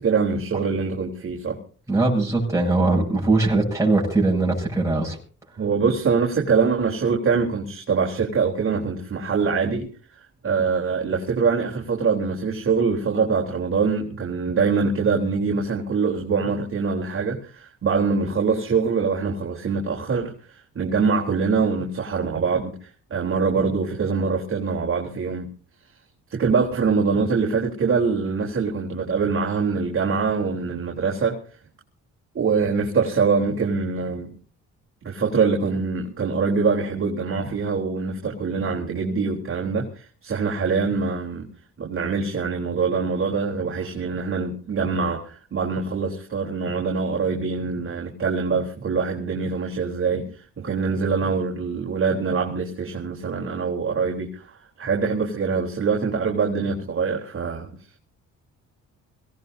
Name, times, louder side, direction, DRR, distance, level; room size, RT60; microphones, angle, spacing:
voice 1, 0.0-1.6 5.6-9.9 10.4-25.5 26.3-31.4 32.3-34.3 35.0-41.5 41.8-57.7, right 5 dB, 45° right, 3.7 m, -24 dB
voice 2, 1.9-5.2, right 2 dB, 10° right, 7.7 m, -21 dB
25.5 x 18.0 x 2.8 m
cardioid pair, 90°, 30 cm